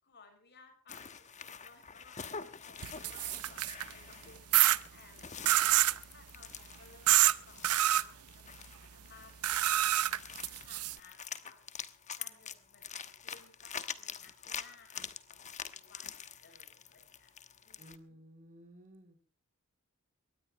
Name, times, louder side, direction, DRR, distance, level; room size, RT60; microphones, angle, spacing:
voice 1, 0.0-8.4 8.7-11.6 12.2-15.4 15.7-17.3 17.6-18.2, left 4 dB, 50° left, 5 dB, 6.8 m, -60 dB
sound 1, 0.9-18.0, left 7 dB, 35° left, 1.2 m, -46 dB
sound 2, 2.8-3.9 4.5-4.8 5.5-6.0 7.1-7.3 7.6-8.0 9.4-11.0, right 13 dB, 80° right, 0.7 m, -26 dB
voice 2, 17.8-19.2, equal, 35° right, 5 dB, 3.5 m, -55 dB
23.0 x 18.5 x 3.2 m, 0.38 s
head